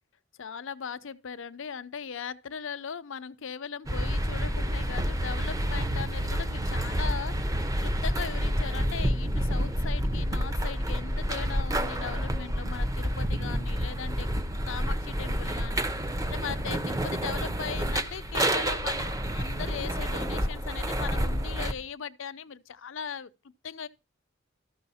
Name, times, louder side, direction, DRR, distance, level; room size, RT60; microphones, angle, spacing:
voice 1, 0.4-14.3 14.6-23.3 23.6-23.9, left 6 dB, 70° left, 0.6 m, -39 dB
sound 1, 3.9-21.7, equal, 15° right, 0.7 m, -29 dB
13.5 x 6.2 x 4.2 m
head